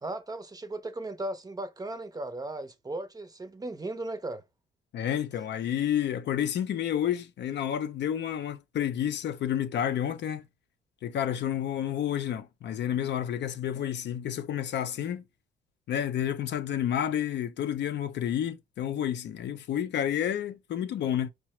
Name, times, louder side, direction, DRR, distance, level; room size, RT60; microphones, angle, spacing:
voice 1, 0.0-4.4, right 2 dB, 20° right, 0.6 m, -36 dB
voice 2, 4.9-10.4 11.0-15.2 15.9-21.3, left 10 dB, 60° left, 0.5 m, -30 dB
4.7 x 2.0 x 2.9 m
cardioid pair, 90°, 20 cm